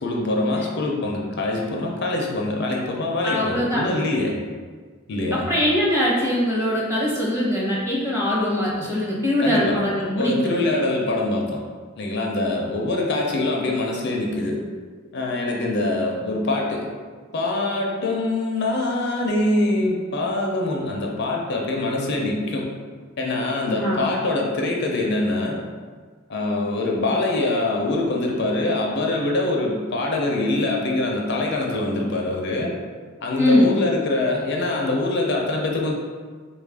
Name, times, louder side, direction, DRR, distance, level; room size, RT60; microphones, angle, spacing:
voice 1, 0.0-4.4 5.1-5.5 9.4-9.8 10.2-11.6 12.0-14.6 15.1-16.9 17.3-22.7 23.2-25.6 26.3-32.7 33.2-35.9, left 2 dB, 60° left, -1 dB, 0.5 m, -24 dB
voice 2, 3.2-3.8 5.3-10.5 23.7-24.1 33.4-33.8, left 1 dB, 15° right, -6 dB, 0.8 m, -22 dB
3.5 x 2.4 x 3.5 m, 1.5 s
head